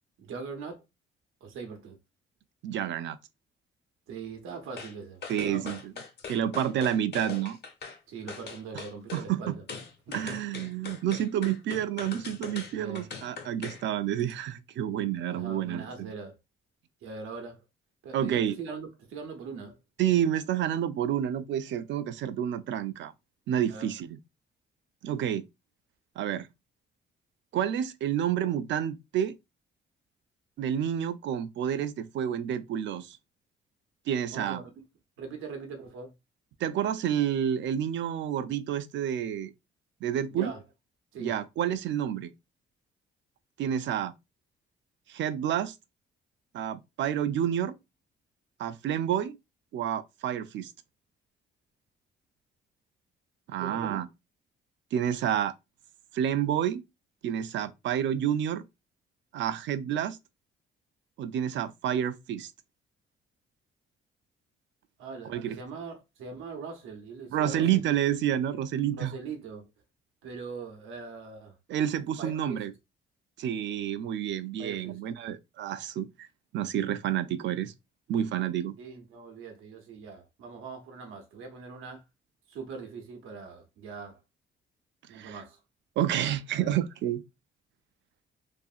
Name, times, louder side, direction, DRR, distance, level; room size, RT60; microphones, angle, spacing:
voice 1, 0.2-0.8 1.4-2.0 4.1-5.8 8.1-9.6 10.1-10.4 12.7-13.1 15.3-16.4 17.0-17.6 18.0-19.8 23.7-23.9 34.3-34.7 35.2-36.1 40.3-40.6 41.1-41.3 53.6-54.0 65.0-68.0 68.9-69.7 70.2-71.6 72.2-72.6 74.6-75.0 78.8-82.0 82.5-84.2 85.1-85.6 86.5-86.7, right 5 dB, 85° right, 0.7 m, -41 dB
voice 2, 2.6-3.2 5.3-5.9 6.3-7.6 9.1-9.5 10.1-16.1 18.1-18.6 20.0-23.1 23.5-24.2 25.0-25.5 26.2-26.5 27.5-29.3 30.6-33.2 34.1-34.6 36.6-39.5 40.0-40.5 41.2-42.3 43.6-44.1 45.1-45.7 46.5-47.7 48.6-49.4 49.7-50.7 53.5-54.1 54.9-55.5 56.1-56.8 57.2-58.7 59.3-60.2 61.2-62.5 65.3-65.6 67.3-69.1 71.7-72.7 73.4-76.3 76.5-77.7 78.1-78.8 85.1-85.4 86.0-87.2, right 10 dB, 70° right, 0.4 m, -29 dB
sound 1, 4.8-4.9 5.2-8.0 8.3-9.3 9.7-13.8 14.2-14.3, left 5 dB, 60° left, 1.0 m, -41 dB
2.7 x 2.5 x 2.4 m
cardioid pair, 90°, 20 cm